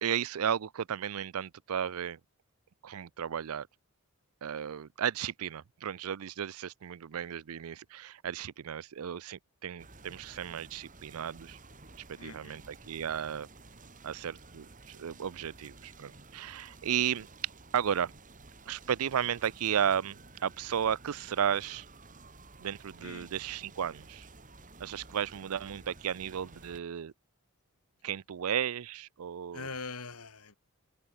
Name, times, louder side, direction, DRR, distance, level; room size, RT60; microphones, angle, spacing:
voice 1, 0.0-2.2 2.8-3.7 4.4-11.6 12.2-13.5 14.0-17.3 17.7-18.1 18.7-21.9 22.6-24.3 24.8-27.1 28.0-29.7, right 8 dB, 75° right, 0.5 m, -34 dB
sound 1, 9.8-26.8, right 3 dB, 35° right, 2.8 m, -53 dB
voice 2, 12.2-12.6 23.0-23.3 29.5-30.6, left 4 dB, 85° left, 2.6 m, -42 dB
open air
head